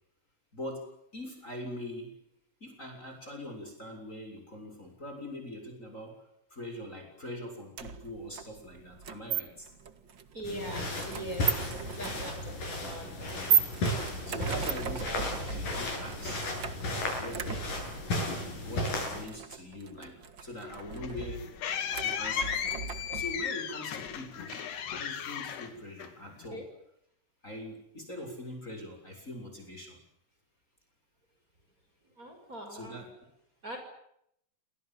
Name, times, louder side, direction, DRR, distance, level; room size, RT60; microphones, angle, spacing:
voice 1, 0.5-2.1 2.6-6.2 6.5-9.7 13.3-13.5 14.3-16.5 17.2-17.5 17.9-18.0 18.5-21.4 21.9-22.8 23.1-24.6 24.9-26.7 27.4-30.0 32.7-33.2, left 1 dB, 15° left, 4 dB, 7.0 m, -42 dB
sound 1, 7.8-23.5, right 7 dB, 50° right, 1.4 m, -36 dB
voice 2, 10.3-13.1 26.5-26.6 32.2-33.0 33.6-33.8, right 1 dB, 20° right, 4 dB, 6.4 m, -41 dB
sound 2, 10.4-19.2, left 1 dB, 50° left, 9.8 m, -34 dB
sound 3, 20.6-26.5, left 8 dB, 75° left, 4.3 m, -35 dB
29.0 x 25.5 x 7.6 m, 0.75 s
omnidirectional pair, 4.7 m